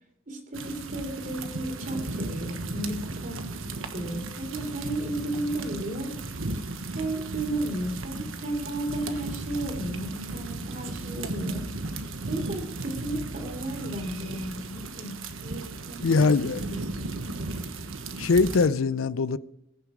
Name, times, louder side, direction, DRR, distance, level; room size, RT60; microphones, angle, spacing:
voice 1, 0.3-3.4 3.9-6.1 6.9-11.7 12.3-17.1, right 1 dB, 45° right, 3.4 m, -34 dB
sound 1, 0.5-18.7, right 2 dB, 85° right, 1.3 m, -35 dB
voice 2, 16.0-16.6 18.2-19.4, left 4 dB, 85° left, 0.5 m, -22 dB
21.0 x 7.2 x 5.0 m
head